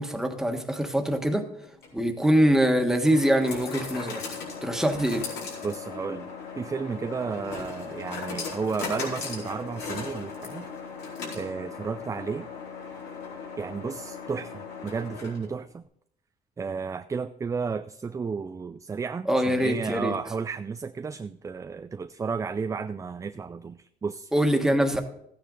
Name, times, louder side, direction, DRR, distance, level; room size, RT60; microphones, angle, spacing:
voice 1, 0.0-1.5 1.9-5.3 19.3-20.1 24.3-25.0, equal, 5° right, 4 dB, 1.5 m, -24 dB
sound 1, 1.6-15.6, left 5 dB, 80° left, 4.4 m, -38 dB
voice 2, 5.6-10.7 11.3-12.5 13.6-15.8 16.6-24.3, right 5 dB, 20° right, 10 dB, 0.4 m, -33 dB
14.5 x 9.2 x 3.9 m, 0.73 s
cardioid pair, 110°, 17 cm